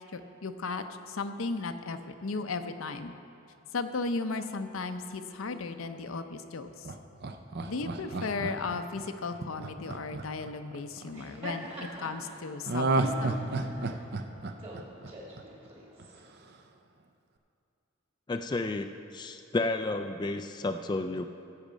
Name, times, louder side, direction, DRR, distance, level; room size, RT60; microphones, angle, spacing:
voice 1, 0.1-3.1 3.7-6.9 7.7-13.4, left 3 dB, 70° left, 8 dB, 0.6 m, -35 dB
Laughter, 6.8-11.1 12.7-15.7 16.0-16.1, right 2 dB, 50° right, 0.6 m, -32 dB
Laughter 2, 11.0-16.2, equal, 30° right, 1.9 m, -45 dB
voice 2, 18.3-21.3, left 2 dB, 20° left, 7 dB, 0.3 m, -32 dB
15.5 x 7.3 x 5.1 m, 2.7 s
head